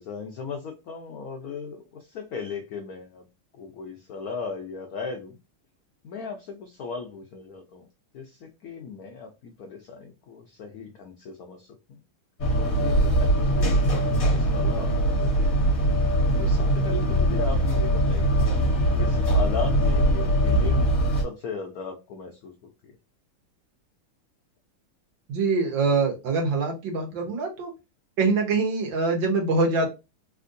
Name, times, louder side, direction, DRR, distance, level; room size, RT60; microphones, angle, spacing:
voice 1, 0.0-3.3 3.5-5.4 6.0-7.9 8.1-12.0 12.5-15.3 16.4-18.6 19.0-22.5 22.8-22.9, left 5 dB, 80° left, 3 dB, 0.8 m, -37 dB
sound 1, 12.4-21.2, right 1 dB, 50° left, 1.3 m, -22 dB
voice 2, 25.3-27.7 28.2-29.9, right 3 dB, 65° right, 1 dB, 1.6 m, -24 dB
3.6 x 2.5 x 2.5 m, 0.26 s
omnidirectional pair, 2.3 m